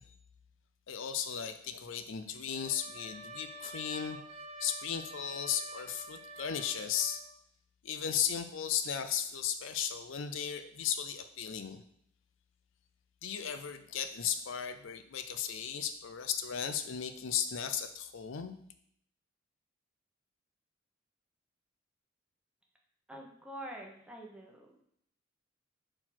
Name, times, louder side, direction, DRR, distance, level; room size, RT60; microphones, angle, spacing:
voice 1, 0.9-4.2 4.6-7.2 7.8-11.8 13.2-18.6, left 8 dB, 70° left, 8 dB, 0.5 m, -35 dB
Trumpet, 2.5-7.3, right 2 dB, 30° right, 0.7 m, -48 dB
voice 2, 23.1-24.8, right 1 dB, 5° right, -1 dB, 1.0 m, -46 dB
4.4 x 4.4 x 5.8 m, 0.67 s
head